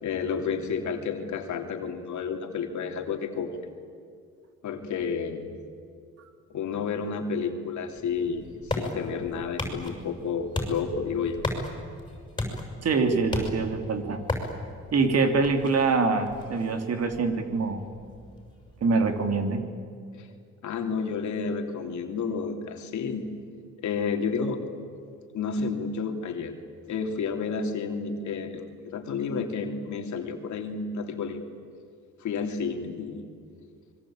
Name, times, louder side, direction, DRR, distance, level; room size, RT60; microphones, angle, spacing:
voice 1, 0.0-3.6 4.6-5.5 6.5-11.4 20.2-20.3 20.6-23.2 23.8-24.6 25.3-26.6 26.9-31.4 32.2-33.2, left 5 dB, 70° left, 4 dB, 3.1 m, -31 dB
sound 1, 8.0-19.4, left 2 dB, 15° left, 6.5 m, -37 dB
voice 2, 12.8-14.2 14.9-17.8 18.8-19.6, right 4 dB, 55° right, 6 dB, 3.2 m, -24 dB
26.0 x 22.5 x 9.0 m, 2.3 s
cardioid pair, 90°, 30 cm